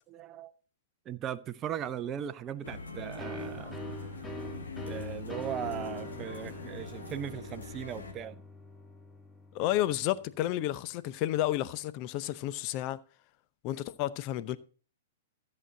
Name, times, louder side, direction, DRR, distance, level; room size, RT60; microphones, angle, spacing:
voice 1, 0.1-0.5 1.1-3.8 4.8-8.4, right 9 dB, 25° right, 0.6 m, -38 dB
sound 1, 2.6-8.1, left 3 dB, 75° left, 2.0 m, -42 dB
sound 2, 3.2-10.7, equal, 5° left, 1.2 m, -44 dB
voice 2, 9.5-13.0 13.6-14.6, left 14 dB, 40° left, 0.6 m, -31 dB
13.5 x 7.7 x 3.8 m
figure-of-eight pair, 105°, 0 cm